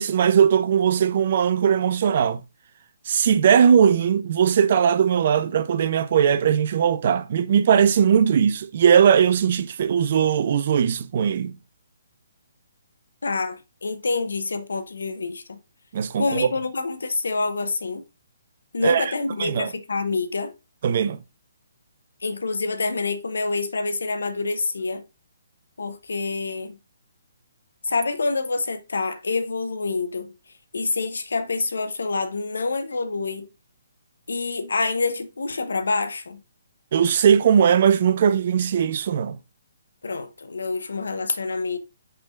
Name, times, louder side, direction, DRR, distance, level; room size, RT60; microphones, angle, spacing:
voice 1, 0.0-2.4 3.1-11.6 15.9-16.5 18.8-19.1 19.4-19.7 20.8-21.2 36.9-39.4, right 8 dB, 45° right, 0.5 m, -19 dB
voice 2, 13.2-15.6 16.2-18.0 18.7-20.5 22.2-25.0 25.8-26.8 27.8-30.3 30.7-33.5 34.3-36.4 40.0-41.8, left 3 dB, 70° left, 0.8 m, -27 dB
5.6 x 3.6 x 2.5 m
figure-of-eight pair, 135°, 0 cm